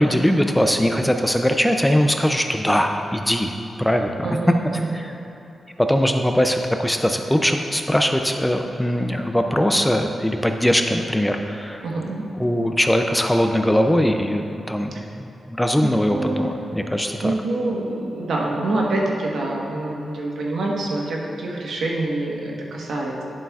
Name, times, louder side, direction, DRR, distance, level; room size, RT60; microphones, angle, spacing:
voice 1, 0.0-3.5 3.8-4.3 4.9-5.1 5.8-11.9 12.4-14.9 15.2-17.3, equal, 5° left, 4 dB, 0.3 m, -21 dB
voice 2, 4.2-4.8 11.8-12.2 15.8-16.6 17.2-23.2, right 2 dB, 75° right, -2 dB, 1.1 m, -26 dB
11.0 x 7.3 x 2.3 m, 2.9 s
wide cardioid pair, 160°, 0 cm